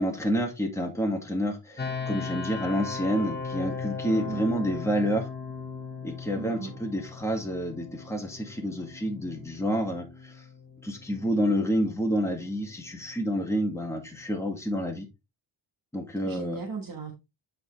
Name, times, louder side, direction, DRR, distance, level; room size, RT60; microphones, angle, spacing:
voice 1, 0.0-5.3 6.0-10.4 10.8-15.1 15.9-16.6, equal, 5° left, 2.0 m, -29 dB
sound 1, 1.8-14.6, left 5 dB, 20° left, 1.3 m, -39 dB
voice 2, 4.0-4.4 6.3-6.8 16.2-17.1, right 4 dB, 45° right, 1.4 m, -36 dB
8.6 x 4.4 x 3.3 m
wide cardioid pair, 115°, 49 cm